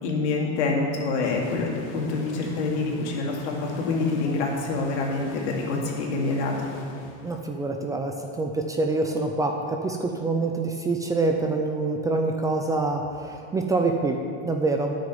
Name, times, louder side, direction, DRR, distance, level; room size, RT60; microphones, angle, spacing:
voice 1, 0.0-6.7, left 3 dB, 80° left, -1 dB, 2.5 m, -26 dB
sound 1, 1.3-7.8, left 3 dB, 55° left, 1.7 m, -41 dB
voice 2, 7.2-14.2 14.4-14.9, right 3 dB, 10° right, 3 dB, 0.4 m, -26 dB
9.1 x 6.4 x 8.6 m, 2.4 s
supercardioid pair, 150°, 34 cm